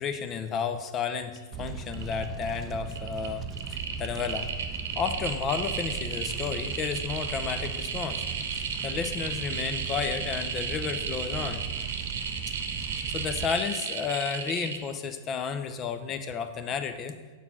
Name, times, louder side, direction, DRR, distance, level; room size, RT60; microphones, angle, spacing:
voice 1, 0.0-4.5 5.0-8.3 8.8-11.7 13.1-17.2, left 6 dB, 30° left, 9 dB, 0.6 m, -32 dB
sound 1, 1.4-1.6 1.9-2.5 2.9-14.8, right 6 dB, 75° right, 0.9 m, -34 dB
Fire, 1.5-13.5, right 6 dB, 30° right, 0.5 m, -38 dB
7.1 x 4.2 x 6.0 m, 1.4 s
hypercardioid pair, 110°, 0 cm